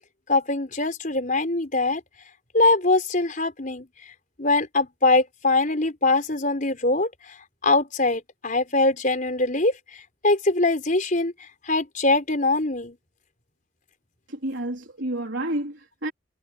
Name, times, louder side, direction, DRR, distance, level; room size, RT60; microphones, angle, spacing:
voice 1, 0.3-2.0 2.5-3.8 4.4-7.1 7.6-9.7 10.2-11.3 11.7-12.9, left 2 dB, 40° left, 4.7 m, -22 dB
voice 2, 14.3-16.1, right 1 dB, 70° right, 4.1 m, -30 dB
head